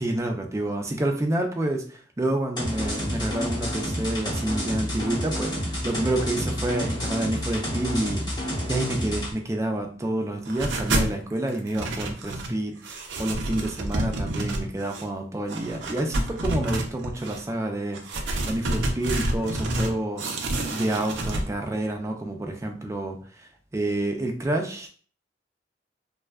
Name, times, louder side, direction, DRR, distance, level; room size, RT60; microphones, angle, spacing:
voice 1, 0.0-8.2 8.7-20.4 20.7-23.2 23.7-24.9, right 1 dB, 15° right, 4 dB, 0.3 m, -28 dB
sound 1, 2.6-9.3, equal, 25° left, 0.8 m, -29 dB
sound 2, 10.5-11.2 11.5-12.6 12.8-15.0 15.5-17.4 17.9-19.9 20.2-21.4, right 1 dB, 80° right, 0.5 m, -29 dB
2.5 x 2.2 x 2.3 m, 0.42 s
head